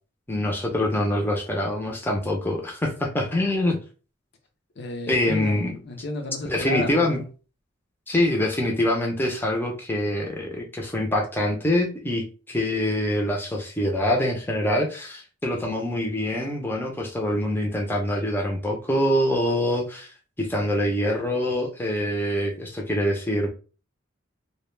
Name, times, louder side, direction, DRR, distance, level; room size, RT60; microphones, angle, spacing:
voice 1, 0.3-3.8 5.1-5.7 6.4-7.2 8.1-20.1 20.4-23.5, left 1 dB, 10° left, 0.5 m, -25 dB
voice 2, 4.8-7.3, left 2 dB, 60° left, 0.6 m, -32 dB
2.2 x 2.2 x 3.1 m
head